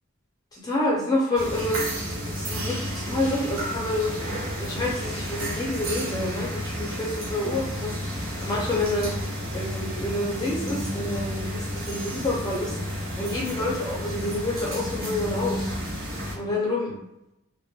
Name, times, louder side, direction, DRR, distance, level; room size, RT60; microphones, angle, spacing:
voice 1, 0.5-1.8 2.3-4.1 4.6-9.1 9.5-15.8 16.3-17.0, left 2 dB, 20° left, -4 dB, 0.4 m, -28 dB
sound 1, 1.3-16.4, equal, 80° right, 0.8 m, -31 dB
2.8 x 2.1 x 2.2 m, 0.87 s
head